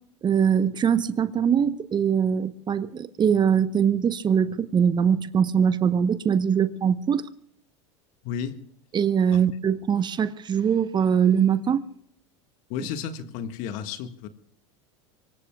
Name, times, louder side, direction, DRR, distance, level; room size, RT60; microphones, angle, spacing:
voice 1, 0.2-7.3 8.9-11.9 12.8-12.9, right 7 dB, 30° right, 0.9 m, -22 dB
voice 2, 8.2-8.6 12.7-14.3, left 7 dB, 60° left, 1.7 m, -32 dB
24.5 x 24.0 x 2.3 m
hypercardioid pair, 95°, 15 cm